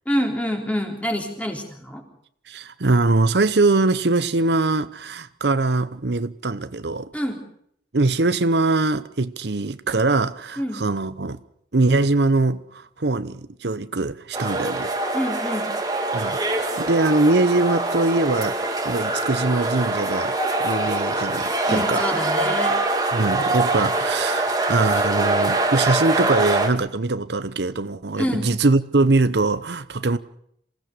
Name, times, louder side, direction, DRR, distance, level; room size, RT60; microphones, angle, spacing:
voice 1, 0.1-2.0 7.1-7.4 10.6-10.8 15.1-15.7 21.7-22.8 28.2-28.5, equal, 10° left, 3.8 m, -26 dB
voice 2, 2.5-7.1 7.9-11.4 11.7-15.1 16.1-20.3 20.6-22.0 23.1-30.2, right 3 dB, 75° right, 0.8 m, -22 dB
sound 1, 14.3-26.7, right 2 dB, 20° right, 2.2 m, -24 dB
27.5 x 17.0 x 6.7 m
head